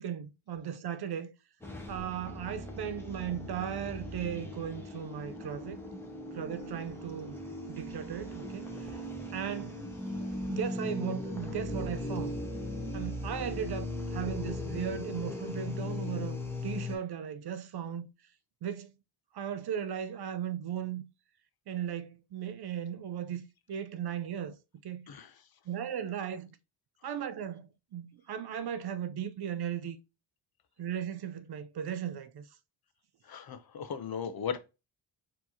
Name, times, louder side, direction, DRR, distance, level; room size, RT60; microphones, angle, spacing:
voice 1, 0.0-1.3 1.9-5.8 6.3-7.4 7.7-8.7 9.3-9.8 10.5-12.4 12.9-16.4 16.6-18.1 18.6-18.9 19.3-21.0 21.7-24.6 24.8-25.1 25.7-26.5 27.0-30.0 30.8-32.4, right 9 dB, 55° right, 0.6 m, -37 dB
sound 1, 1.6-17.0, left 1 dB, 5° left, 1.2 m, -38 dB
voice 2, 25.1-25.4 33.2-34.6, left 7 dB, 50° left, 0.7 m, -37 dB
4.4 x 3.1 x 2.8 m
cardioid pair, 85°, 48 cm